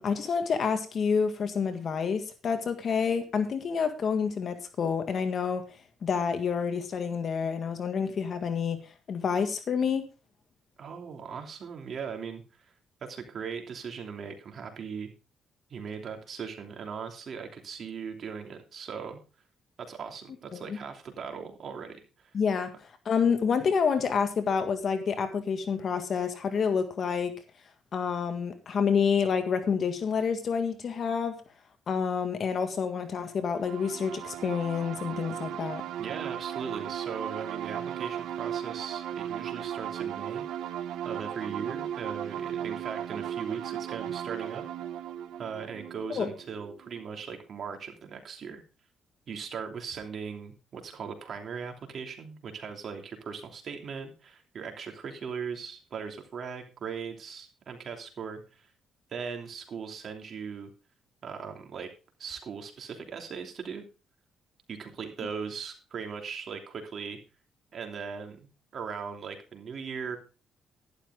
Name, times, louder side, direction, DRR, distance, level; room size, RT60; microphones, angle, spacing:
voice 1, 0.0-5.6 6.0-8.8 9.1-10.1 20.5-20.8 22.3-22.7 23.1-27.3 27.9-31.3 31.9-35.8 46.1-46.3, left 6 dB, 55° left, 8 dB, 1.7 m, -28 dB
voice 2, 10.8-12.4 13.0-15.1 15.7-19.2 19.9-22.3 36.0-40.5 41.0-44.6 45.4-48.6 49.3-58.7 59.1-60.7 61.2-61.9 62.2-63.8 64.7-67.2 67.7-70.2, right 6 dB, 55° right, 4 dB, 3.0 m, -39 dB
sound 1, 33.6-47.1, right 10 dB, 80° right, 0.9 m, -36 dB
12.0 x 11.5 x 3.7 m, 0.32 s
cardioid pair, 90°, 0 cm